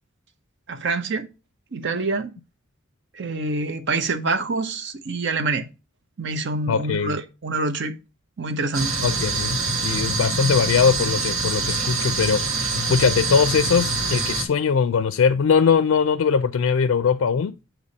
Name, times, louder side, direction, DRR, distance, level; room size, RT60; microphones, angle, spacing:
voice 1, 0.7-1.3 1.7-2.3 3.1-5.6 6.2-7.9 8.4-9.0, right 3 dB, 55° right, 0.7 m, -26 dB
voice 2, 6.7-7.2 9.0-12.4 12.9-17.5, left 6 dB, 70° left, 0.4 m, -21 dB
sound 1, 8.7-14.4, right 3 dB, 90° right, 1.4 m, -25 dB
6.7 x 3.1 x 5.2 m
head